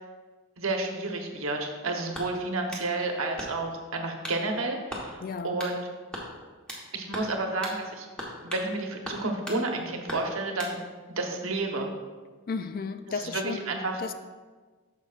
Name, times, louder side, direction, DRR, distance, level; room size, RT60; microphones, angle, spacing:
voice 1, 0.6-5.9 6.9-8.1 8.4-10.8 11.1-11.9 13.1-14.0, right 2 dB, 75° right, 3 dB, 1.0 m, -31 dB
sound 1, 2.1-2.9 3.4-3.8 4.2-4.4 4.9-5.1 5.6-5.8 6.1-6.9 7.1-7.3 7.6-7.8 8.2-8.7 9.0-9.6 10.1-10.8, equal, 5° left, 1.1 m, -38 dB
voice 2, 5.2-5.6 12.5-13.7 14.0-14.1, left 5 dB, 40° left, 10 dB, 0.3 m, -33 dB
9.5 x 6.8 x 2.4 m, 1.4 s
head